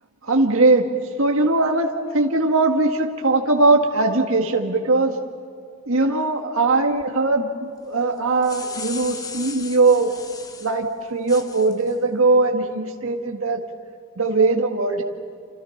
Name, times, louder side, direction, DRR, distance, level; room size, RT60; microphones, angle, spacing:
voice 1, 0.2-0.9 1.2-5.2 5.9-10.1 10.6-13.6 14.2-15.0, right 3 dB, 75° right, 2 dB, 1.9 m, -20 dB
sound 1, 8.2-10.7 11.3-11.9, left 5 dB, 15° left, 1.1 m, -36 dB
29.0 x 28.0 x 5.9 m, 2.3 s
head